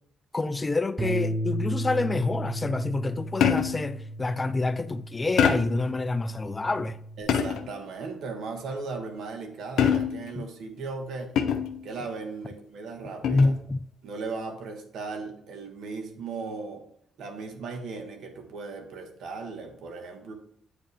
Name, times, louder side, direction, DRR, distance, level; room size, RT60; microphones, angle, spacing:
voice 1, 0.3-7.0 10.4-10.5 13.2-13.8, left 3 dB, 25° left, 0.3 m, -27 dB
Bass guitar, 1.0-7.2, right 1 dB, 15° right, 0.8 m, -34 dB
sound 1, 3.4-3.9 5.4-5.9 7.3-7.8 9.8-10.3 11.4-11.8 13.2-13.6, left 8 dB, 75° left, 0.7 m, -24 dB
voice 2, 7.2-11.4 11.8-13.5 14.0-16.8 17.2-20.3, right 4 dB, 70° right, 1.2 m, -37 dB
8.7 x 5.0 x 3.3 m
cardioid pair, 90°, 0 cm